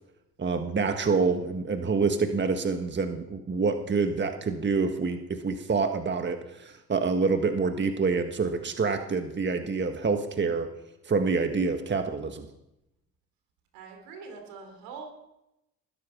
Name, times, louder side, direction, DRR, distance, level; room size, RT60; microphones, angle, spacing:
voice 1, 0.4-10.7 11.0-12.5, right 4 dB, 30° right, 6 dB, 1.6 m, -27 dB
voice 2, 13.7-15.1, right 5 dB, 80° right, 3 dB, 4.1 m, -43 dB
20.0 x 10.0 x 6.1 m, 0.89 s
supercardioid pair, 60°, 34 cm